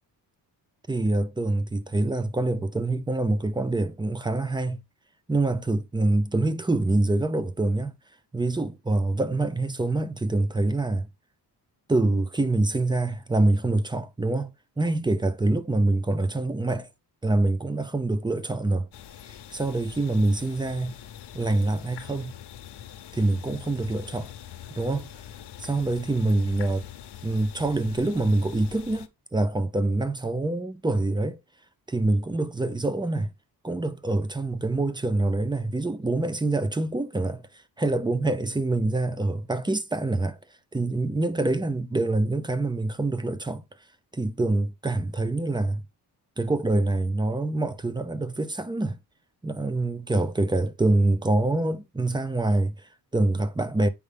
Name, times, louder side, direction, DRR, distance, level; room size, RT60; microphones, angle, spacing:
voice 1, 0.9-4.8 5.3-7.9 8.3-11.1 11.9-16.9 17.2-18.9 19.5-21.0 21.3-22.4 23.1-24.3 24.7-25.1 25.6-26.8 27.2-31.4 31.9-33.3 33.6-40.4 40.7-43.6 44.1-45.8 46.4-49.0 49.4-53.9, right 2 dB, 10° right, 0.7 m, -25 dB
sound 1, 18.9-29.1, left 10 dB, 75° left, 1.0 m, -44 dB
8.6 x 5.4 x 3.4 m
wide cardioid pair, 145°, 41 cm